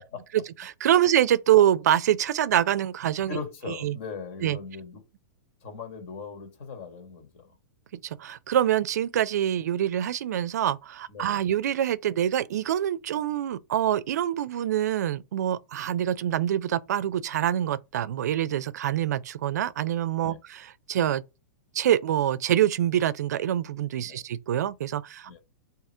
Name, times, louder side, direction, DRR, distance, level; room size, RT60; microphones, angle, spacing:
voice 1, 0.8-3.4 3.8-4.0 4.4-4.6 7.9-21.2 21.7-25.4, right 11 dB, 80° right, 0.4 m, -25 dB
voice 2, 3.3-5.0 5.6-7.5 11.1-11.5 20.2-20.4 24.0-24.2 25.3-25.4, left 5 dB, 55° left, 1.4 m, -39 dB
3.6 x 2.8 x 4.3 m
supercardioid pair, 160°, 9 cm